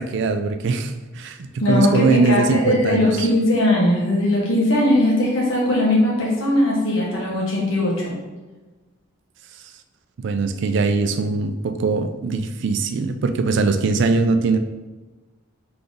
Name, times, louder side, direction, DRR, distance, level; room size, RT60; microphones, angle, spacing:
voice 1, 0.0-3.1 10.2-14.6, right 4 dB, 60° right, 8 dB, 0.3 m, -21 dB
voice 2, 1.6-8.1, left 1 dB, 65° left, -4 dB, 1.4 m, -19 dB
3.9 x 3.4 x 3.8 m, 1.2 s
head